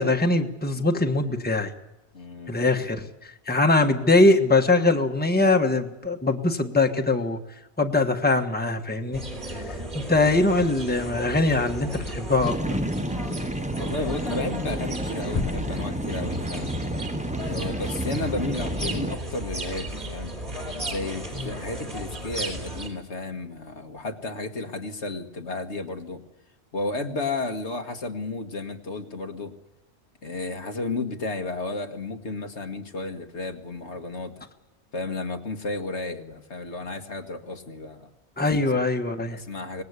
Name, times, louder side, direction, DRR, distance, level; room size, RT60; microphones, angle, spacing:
voice 1, 0.0-1.7 2.5-7.4 7.8-9.2 9.7-12.8 21.4-21.5 38.4-39.4, left 2 dB, 10° left, 4 dB, 1.4 m, -22 dB
voice 2, 2.1-2.5 13.8-16.7 17.4-20.3 20.8-26.2 26.7-29.5 30.2-34.4 34.9-38.1 38.6-38.8 39.3-39.8, left 3 dB, 80° left, 5 dB, 2.0 m, -33 dB
sound 1, 9.1-22.9, right 1 dB, 45° right, 4.3 m, -34 dB
sound 2, 12.4-19.2, right 1 dB, 10° right, 0.7 m, -31 dB
sound 3, 15.4-16.8, left 5 dB, 35° left, 1.0 m, -33 dB
25.0 x 19.0 x 8.2 m, 0.97 s
omnidirectional pair, 1.1 m